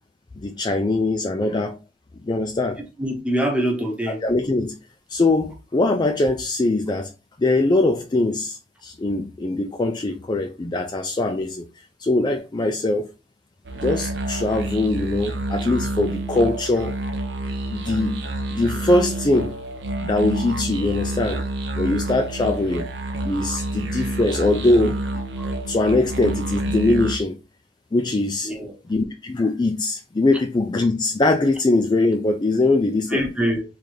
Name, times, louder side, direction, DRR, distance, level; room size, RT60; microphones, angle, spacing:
voice 1, 0.4-1.8 2.2-2.8 4.2-4.8 5.1-7.1 7.4-11.7 12.0-13.1 13.8-17.0 17.5-18.2 18.5-19.6 20.0-21.4 21.7-22.9 23.2-25.0 25.7-27.4 27.9-28.5 28.9-33.2, left 2 dB, 25° left, 0.4 m, -22 dB
voice 2, 3.0-4.2 25.4-25.5 28.4-28.8 33.1-33.6, equal, 5° right, 1.1 m, -24 dB
sound 1, 13.6-27.2, right 2 dB, 75° right, 0.7 m, -28 dB
3.8 x 3.3 x 3.2 m
head